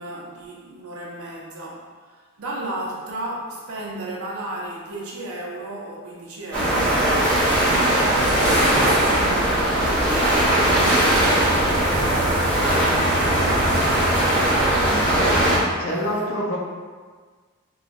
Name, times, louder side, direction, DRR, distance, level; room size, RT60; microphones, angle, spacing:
voice 1, 0.0-2.1 2.4-7.5 8.1-14.5 14.8-16.3, right 1 dB, 85° right, -3 dB, 0.6 m, -34 dB
sound 1, 6.5-15.6, right 1 dB, 5° left, 0.9 m, -19 dB
voice 2, 14.9-15.4 15.8-16.6, equal, 75° left, -2 dB, 0.6 m, -27 dB
3.2 x 2.3 x 2.5 m, 1.5 s
head